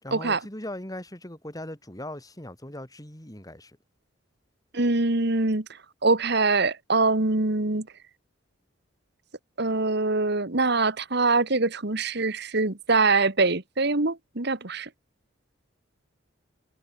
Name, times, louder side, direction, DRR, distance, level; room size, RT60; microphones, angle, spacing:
voice 1, 0.0-3.8, left 1 dB, 20° left, 4.4 m, -39 dB
voice 2, 4.7-5.7 6.0-7.9 9.6-14.9, right 3 dB, 55° right, 1.8 m, -24 dB
head